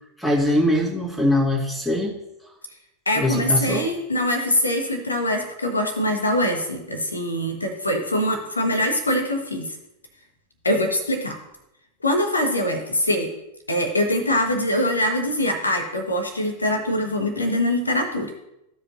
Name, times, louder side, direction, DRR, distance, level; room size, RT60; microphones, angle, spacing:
voice 1, 0.2-2.2 3.2-3.9, left 1 dB, ahead, -5 dB, 2.1 m, -22 dB
voice 2, 3.1-9.7 10.6-11.4 12.0-13.3 13.7-18.3, left 1 dB, 80° left, 5 dB, 1.3 m, -23 dB
14.5 x 5.0 x 2.8 m, 0.87 s
figure-of-eight pair, 90°, 0 cm